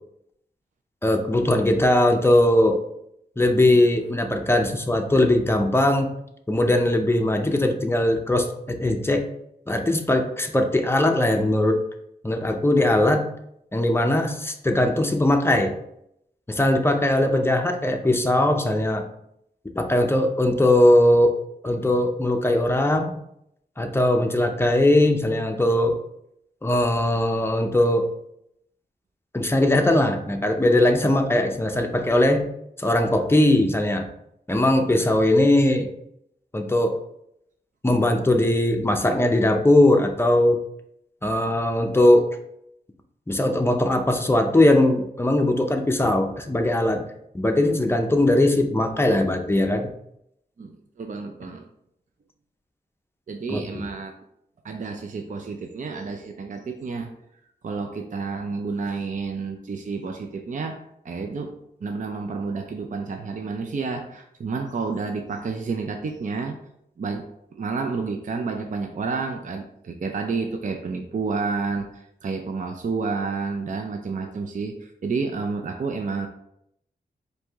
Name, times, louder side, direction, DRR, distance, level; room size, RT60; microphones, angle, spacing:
voice 1, 1.0-2.8 3.4-6.1 6.5-9.3 9.7-11.8 12.2-13.3 13.7-15.7 16.5-19.0 19.7-21.4 21.6-23.2 23.8-26.0 26.6-28.1 29.3-32.5 32.8-34.1 34.5-35.9 36.5-37.0 37.8-40.6 41.2-42.3 43.3-47.1 47.3-49.9 53.5-53.6, left 1 dB, 15° left, 5 dB, 0.6 m, -20 dB
voice 2, 51.0-51.7 53.3-54.1 54.6-57.1 57.6-60.8 61.0-66.6 67.0-67.3 67.5-71.9 72.2-76.3, right 4 dB, 50° right, 4 dB, 0.5 m, -30 dB
4.6 x 2.7 x 3.4 m, 0.76 s
wide cardioid pair, 75°, 17 cm